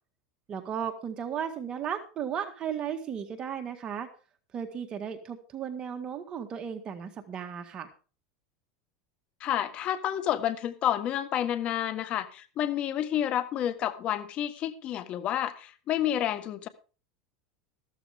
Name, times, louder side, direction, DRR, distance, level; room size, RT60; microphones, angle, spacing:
voice 1, 0.5-4.1 4.5-7.9, right 8 dB, 30° right, 6 dB, 1.8 m, -35 dB
voice 2, 9.4-16.7, left 11 dB, 40° left, 12 dB, 1.5 m, -30 dB
14.0 x 13.0 x 3.6 m, 0.36 s
supercardioid pair, 135°, 3 cm